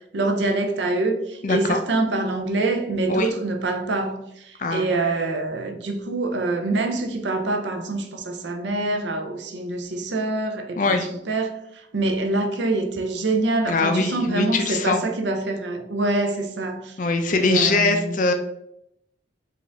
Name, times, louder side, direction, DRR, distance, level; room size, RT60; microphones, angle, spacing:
voice 1, 0.1-11.0 11.3-17.0 17.4-18.2, right 2 dB, 70° right, 0.6 m, -25 dB
voice 2, 1.4-1.8 3.1-3.3 4.6-4.8 10.8-11.1 13.7-15.0 17.0-18.3, left 3 dB, 40° left, 0.4 m, -22 dB
4.8 x 2.5 x 3.4 m
head